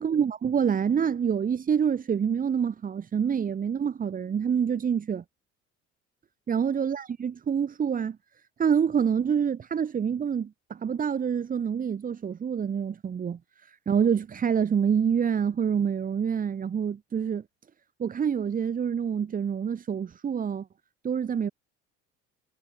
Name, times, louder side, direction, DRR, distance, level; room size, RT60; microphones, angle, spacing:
voice 1, 0.0-5.2 6.5-8.2 8.6-17.4 18.0-20.7 21.0-21.5, right 7 dB, 25° right, 0.9 m, -27 dB
figure-of-eight pair, 65°, 36 cm